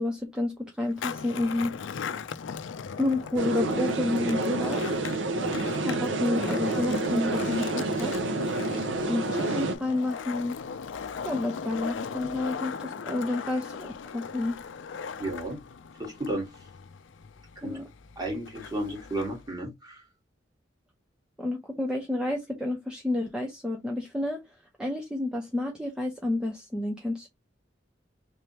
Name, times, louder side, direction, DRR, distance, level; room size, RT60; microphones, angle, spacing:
voice 1, 0.0-1.7 3.0-4.8 5.8-8.3 9.1-10.6 11.2-14.6 17.6-17.8 21.4-24.4 24.8-27.3, left 2 dB, 5° right, 0.7 m, -30 dB
Skateboard, 0.9-19.5, left 6 dB, 85° left, 0.4 m, -39 dB
sound 1, 3.4-9.8, right 2 dB, 85° right, 0.8 m, -28 dB
voice 2, 15.2-15.6 16.0-16.5 17.6-17.8 18.1-20.0, right 1 dB, 20° right, 1.8 m, -33 dB
3.5 x 3.3 x 2.9 m
head